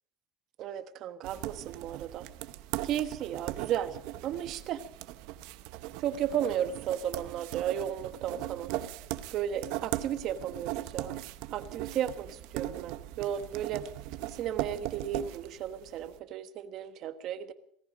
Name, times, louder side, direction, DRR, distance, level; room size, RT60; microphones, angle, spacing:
voice 1, 0.6-2.2 2.8-3.9 4.2-4.8 6.0-8.7 9.3-11.1 11.5-12.3 12.5-13.8 14.4-17.5, right 10 dB, 50° right, 10 dB, 1.2 m, -34 dB
sound 1, 1.2-16.1, right 15 dB, 75° right, 0.9 m, -39 dB
17.5 x 15.0 x 5.2 m, 0.67 s
cardioid pair, 150°, 0 cm